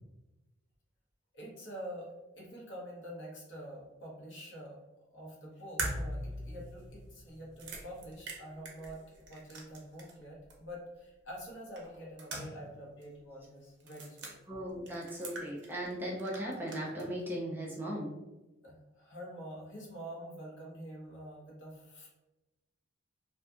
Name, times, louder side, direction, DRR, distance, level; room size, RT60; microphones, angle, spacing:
voice 1, 1.3-4.8 5.1-9.0 9.3-14.4 18.6-22.1, equal, 65° left, -3 dB, 0.9 m, -46 dB
sound 1, 5.8-10.2 10.5-10.6 11.8-12.8 13.0-13.1 13.8-14.3 14.9-15.9 16.2-17.1, right 2 dB, 60° right, 0.5 m, -41 dB
voice 2, 14.5-18.1, equal, 10° right, -4 dB, 0.3 m, -37 dB
2.5 x 2.4 x 2.3 m, 1.1 s
head